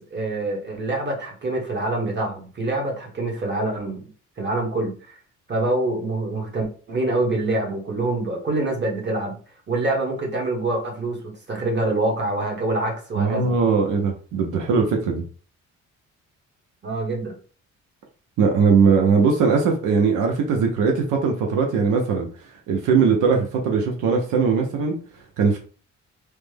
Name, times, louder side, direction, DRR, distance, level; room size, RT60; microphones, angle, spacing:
voice 1, 0.1-4.1 4.4-5.1 5.5-9.4 9.7-11.2 11.5-13.5 16.8-17.4, right 2 dB, 35° right, 1 dB, 1.3 m, -25 dB
voice 2, 13.2-15.2 18.4-22.3 22.7-25.0 25.4-25.6, right 5 dB, 85° right, 2 dB, 0.7 m, -20 dB
3.1 x 2.1 x 3.3 m, 0.39 s
cardioid pair, 90°, 30 cm